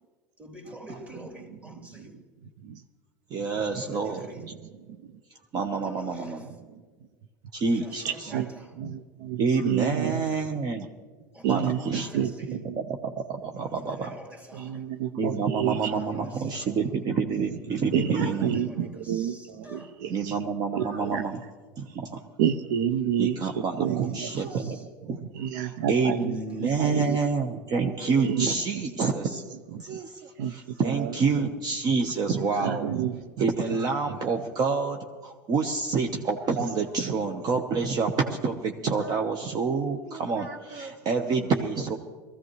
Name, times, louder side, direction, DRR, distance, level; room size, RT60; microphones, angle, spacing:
voice 1, 0.4-2.3 3.6-4.5 5.7-6.6 7.7-8.8 9.8-10.5 11.3-12.8 13.7-15.0 16.0-16.9 18.3-20.1 23.8-24.9 26.3-27.3, equal, 15° right, 2.5 m, -47 dB
voice 2, 3.3-4.3 5.5-6.4 7.5-8.3 9.4-10.9 11.5-12.1 13.0-14.1 15.2-18.6 20.1-21.4 21.8-22.2 23.2-25.2 25.5-29.4 29.8-32.9 33.4-42.0, right 4 dB, 45° right, 1.1 m, -28 dB
voice 3, 8.0-8.5 8.8-10.3 11.4-11.8 12.1-12.8 14.5-15.9 17.9-20.3 20.7-21.2 22.4-24.3 25.4-26.3 26.6-27.2 28.2-28.5 28.7-28.8 30.4-30.5 30.8-31.1 32.6-33.3, right 9 dB, 75° right, 0.6 m, -29 dB
20.5 x 15.0 x 3.2 m
hypercardioid pair, 95°, 10 cm